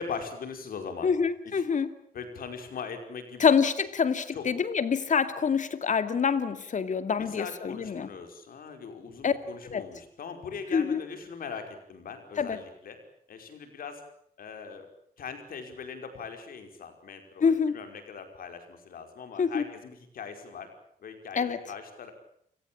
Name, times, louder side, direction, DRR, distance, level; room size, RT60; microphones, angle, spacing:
voice 1, 0.0-1.1 2.1-3.4 4.3-4.5 7.2-13.0 13.3-14.0 14.4-14.9 15.2-20.7 21.0-22.1, left 5 dB, 80° left, 6 dB, 5.2 m, -40 dB
voice 2, 1.0-1.9 3.4-8.1 9.2-9.3 9.7-9.8 10.7-11.0 12.4-12.6 17.4-17.8 19.4-19.6 21.4-21.6, left 6 dB, 60° left, 11 dB, 2.4 m, -26 dB
29.5 x 17.5 x 8.8 m, 0.68 s
cardioid pair, 75°, 15 cm